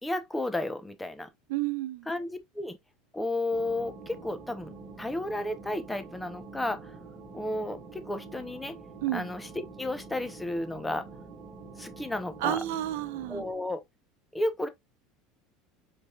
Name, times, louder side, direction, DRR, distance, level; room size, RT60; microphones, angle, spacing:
voice 1, 0.0-1.3 2.1-2.8 3.1-4.7 5.0-6.9 7.3-8.7 9.1-9.5 9.8-11.1 11.8-12.6 13.3-13.8 14.3-14.7, left 1 dB, 5° left, 0.6 m, -32 dB
voice 2, 1.5-2.1 9.0-9.3 12.4-13.4, right 14 dB, 85° right, 0.7 m, -30 dB
sound 1, 3.5-13.5, right 4 dB, 15° right, 1.4 m, -46 dB
5.1 x 4.4 x 2.3 m
cardioid pair, 175°, 0 cm